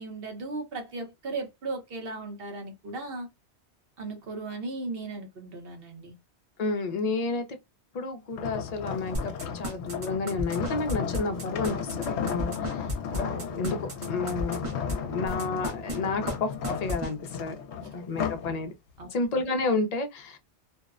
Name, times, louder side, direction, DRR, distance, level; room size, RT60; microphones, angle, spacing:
voice 1, 0.0-3.3 4.0-6.2 17.8-17.9 19.0-19.1, right 3 dB, 60° right, 0.9 m, -36 dB
voice 2, 6.6-7.4 7.9-17.6 17.9-18.7 19.1-20.4, left 3 dB, 45° left, 0.5 m, -31 dB
sound 1, 8.3-18.5 19.0-19.3, left 7 dB, 80° left, 0.9 m, -34 dB
sound 2, 9.1-14.9 15.3-16.0 16.3-16.4 16.6-17.1, equal, 35° right, 0.6 m, -32 dB
2.6 x 2.1 x 2.3 m
omnidirectional pair, 1.1 m